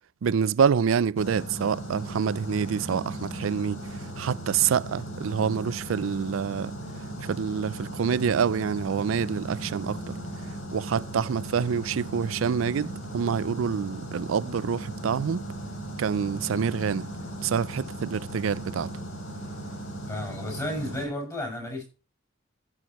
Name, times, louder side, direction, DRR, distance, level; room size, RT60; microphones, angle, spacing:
voice 1, 0.2-6.7 7.2-10.2 10.4-15.5 16.0-17.1 17.4-18.9, right 6 dB, 85° right, 0.4 m, -27 dB
sound 1, 1.2-21.1, right 1 dB, 80° left, 3.5 m, -37 dB
voice 2, 20.1-21.8, left 1 dB, 20° left, 6.0 m, -33 dB
16.0 x 6.3 x 3.0 m
head